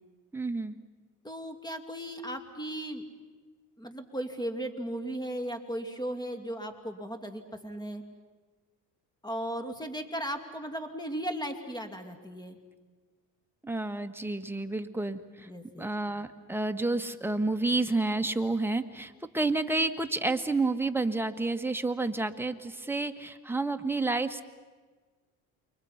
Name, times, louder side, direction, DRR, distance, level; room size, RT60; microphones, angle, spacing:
voice 1, 0.3-0.8 13.6-15.5 15.8-24.4, right 2 dB, 5° right, 7 dB, 1.6 m, -30 dB
voice 2, 1.2-3.1 3.8-8.0 9.2-12.6 15.5-15.9, right 1 dB, 10° left, 7 dB, 2.7 m, -36 dB
29.5 x 24.0 x 5.9 m, 1.4 s
supercardioid pair, 75°, 37 cm